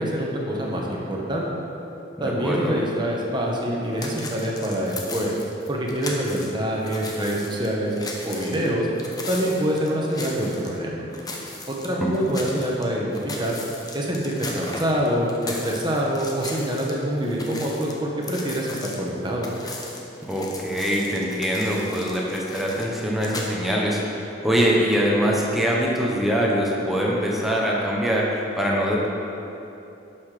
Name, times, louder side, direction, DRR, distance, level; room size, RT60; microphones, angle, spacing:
voice 1, 0.0-1.5 2.2-5.3 5.7-7.9 8.2-8.9 9.3-11.0 11.7-13.1 13.4-13.6 13.9-19.5, equal, 25° right, -2 dB, 1.3 m, -25 dB
voice 2, 2.2-2.8 12.0-12.1 20.2-29.1, equal, ahead, -4 dB, 1.1 m, -23 dB
sound 1, 4.0-6.5 6.8-10.8 11.1-12.8 13.1-16.9 17.2-23.5, left 2 dB, 20° left, 0.9 m, -37 dB
11.5 x 5.9 x 5.0 m, 2.9 s
head